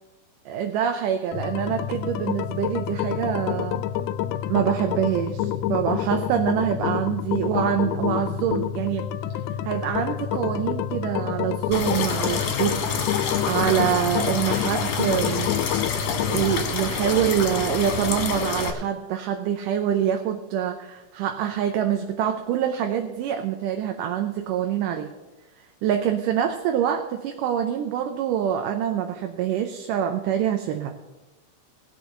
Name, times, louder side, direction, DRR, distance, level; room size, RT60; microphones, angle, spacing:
voice 1, 0.5-3.8 4.5-9.0 9.7-15.5 16.3-25.1 25.8-31.0, right 9 dB, 85° right, 5 dB, 2.4 m, -25 dB
sound 1, 1.3-16.7, left 10 dB, 80° left, 1.9 m, -28 dB
sound 2, 11.7-18.7, left 5 dB, 60° left, 2.3 m, -28 dB
19.0 x 6.3 x 5.8 m, 1.1 s
omnidirectional pair, 3.7 m